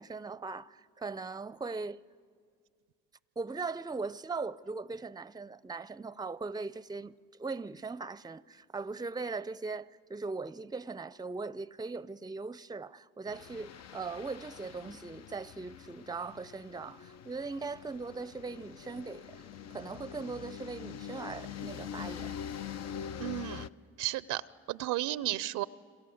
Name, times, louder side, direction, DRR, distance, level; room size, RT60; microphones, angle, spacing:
voice 1, 0.0-2.0 3.4-7.1 7.4-22.3, right 4 dB, 15° right, 0.6 m, -39 dB
sound 1, 13.3-23.7, left 8 dB, 55° left, 0.7 m, -44 dB
voice 2, 23.2-23.7 24.0-24.4 24.7-25.7, right 15 dB, 75° right, 0.7 m, -33 dB
28.5 x 25.5 x 7.9 m
hypercardioid pair, 55°, 31 cm